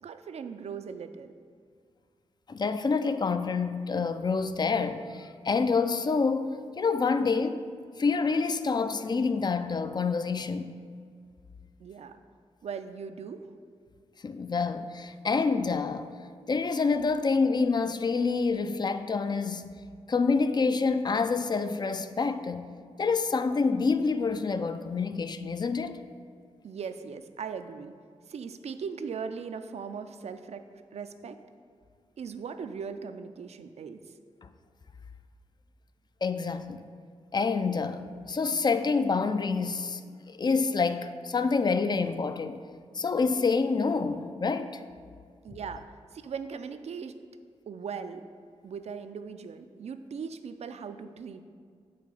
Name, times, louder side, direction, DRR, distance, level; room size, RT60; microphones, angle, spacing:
voice 1, 0.0-1.3 11.8-12.2 12.6-13.5 26.6-27.9 28.3-30.6 30.9-31.4 32.2-34.0 45.4-45.8 46.1-47.2 47.7-48.2 48.6-51.4, right 6 dB, 60° right, 0.4 m, -39 dB
voice 2, 2.5-7.7 8.0-10.7 14.2-16.1 16.5-19.7 20.1-22.7 23.0-26.0 34.4-34.5 36.2-36.8 37.3-42.6 42.9-44.8, left 4 dB, 35° left, 0.3 m, -27 dB
7.7 x 2.8 x 4.8 m
cardioid pair, 50°, 12 cm